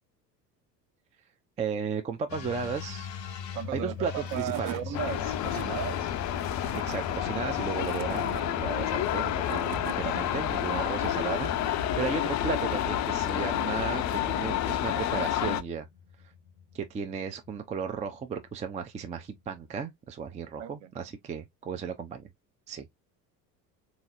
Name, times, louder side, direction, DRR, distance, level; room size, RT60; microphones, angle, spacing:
voice 1, 1.6-3.1 3.7-4.9 6.7-15.9 16.7-22.3 22.7-22.9, right 6 dB, 15° right, 0.4 m, -35 dB
sound 1, 2.3-19.8, left 7 dB, 80° left, 0.7 m, -43 dB
voice 2, 3.5-6.1 20.6-20.9, right 10 dB, 45° right, 0.8 m, -36 dB
Tools / Wood, 3.9-4.0 4.3-4.8 5.3-5.7 6.4-7.0 7.6-8.4 9.2-10.0, right 13 dB, 75° right, 0.5 m, -41 dB
sound 2, 4.9-15.6, left 11 dB, 35° left, 0.5 m, -29 dB
3.8 x 2.8 x 2.5 m
figure-of-eight pair, 60°, 49 cm